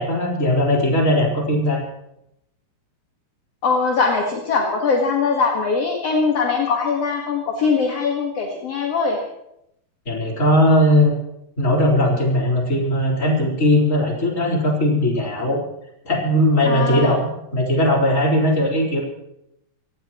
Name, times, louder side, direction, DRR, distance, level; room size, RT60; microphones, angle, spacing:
voice 1, 0.0-1.8 10.1-11.1 11.6-15.6 16.0-19.0, left 1 dB, 20° left, -2 dB, 4.3 m, -18 dB
voice 2, 3.6-9.2 16.6-17.1, left 4 dB, 50° left, 0 dB, 2.1 m, -21 dB
25.5 x 18.0 x 3.1 m, 0.81 s
omnidirectional pair, 4.8 m